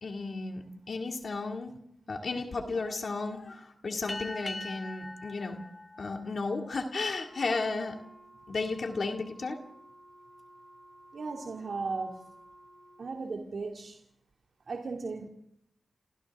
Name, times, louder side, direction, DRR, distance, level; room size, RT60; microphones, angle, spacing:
voice 1, 0.0-1.7 2.1-5.6 6.0-8.0 8.5-9.6, left 3 dB, 65° left, 3 dB, 2.3 m, -34 dB
sound 1, 4.1-7.0, left 2 dB, 30° left, 1.2 m, -42 dB
Wind instrument woodwind instrument, 7.1-13.3, right 1 dB, 15° right, 4.5 m, -54 dB
voice 2, 11.1-12.2 13.0-14.0 14.7-15.3, right 4 dB, 65° right, 1 dB, 2.4 m, -36 dB
29.0 x 29.0 x 3.6 m, 0.73 s
cardioid pair, 75°, 0 cm